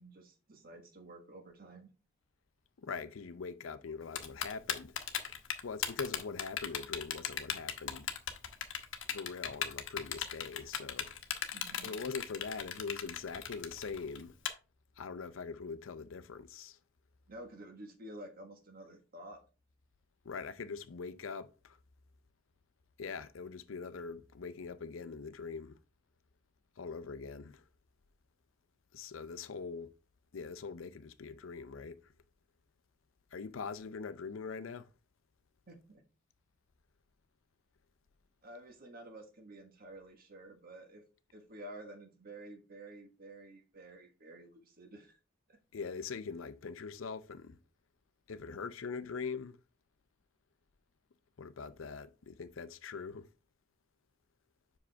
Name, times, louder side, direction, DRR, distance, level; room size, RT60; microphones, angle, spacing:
voice 1, 0.0-1.9 11.5-11.9 17.3-19.4 35.7-36.0 38.4-41.0 41.3-45.2 45.5-45.6, right 1 dB, 50° right, 1.4 m, -51 dB
voice 2, 2.8-5.0 5.6-8.1 9.1-11.1 11.8-14.3 15.0-16.8 20.2-21.8 23.0-25.8 26.8-27.6 28.9-30.0 30.3-32.0 33.3-34.9 45.7-47.6 48.3-49.6 51.4-53.3, left 5 dB, 85° left, 0.6 m, -42 dB
Typing, 4.2-14.5, left 9 dB, 70° left, 0.9 m, -36 dB
5.9 x 5.0 x 3.4 m
head